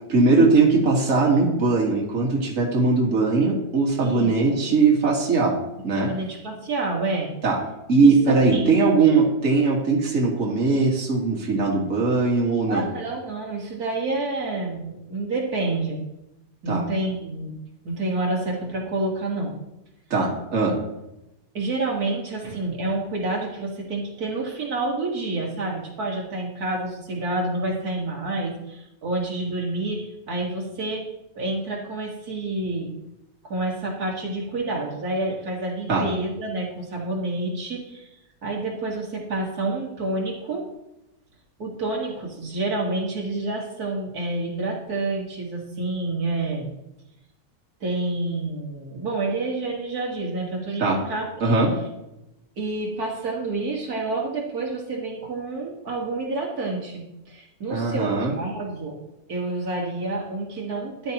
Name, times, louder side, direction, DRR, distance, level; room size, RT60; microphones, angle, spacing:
voice 1, 0.1-5.6 5.8-6.1 7.4-7.6 7.9-12.9 16.7-16.8 20.1-20.8 35.9-36.1 50.8-51.0 51.4-51.7 57.7-58.3, right 3 dB, 55° right, -2 dB, 2.2 m, -20 dB
voice 2, 4.0-4.6 5.9-7.3 8.0-8.7 12.7-16.0 16.6-17.6 17.9-19.6 21.5-31.1 31.4-32.9 33.4-38.1 38.4-40.6 41.6-46.7 47.8-51.6 52.6-59.0 59.3-61.1, right 2 dB, 75° right, -2 dB, 2.2 m, -28 dB
13.5 x 10.5 x 3.0 m, 0.91 s
omnidirectional pair, 1.6 m